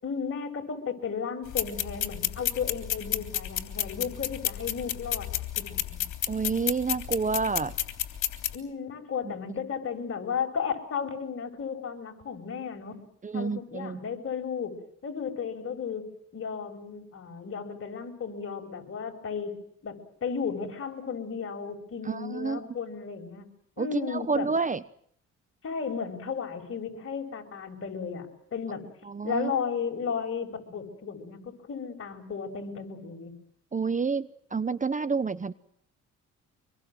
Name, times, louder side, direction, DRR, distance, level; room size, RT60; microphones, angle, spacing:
voice 1, 0.0-6.0 8.5-13.0 13.3-14.8 15.0-23.5 23.8-24.5 25.6-28.9 29.2-33.3, left 6 dB, 45° left, 3 dB, 7.1 m, -34 dB
sound 1, 1.5-8.5, left 11 dB, 75° left, 3.3 m, -31 dB
voice 2, 6.3-7.7 13.2-14.0 22.1-22.6 23.8-24.8 29.0-29.5 33.7-35.5, right 4 dB, 25° right, 15 dB, 0.9 m, -29 dB
26.5 x 22.5 x 7.7 m, 0.67 s
cardioid pair, 90°, 30 cm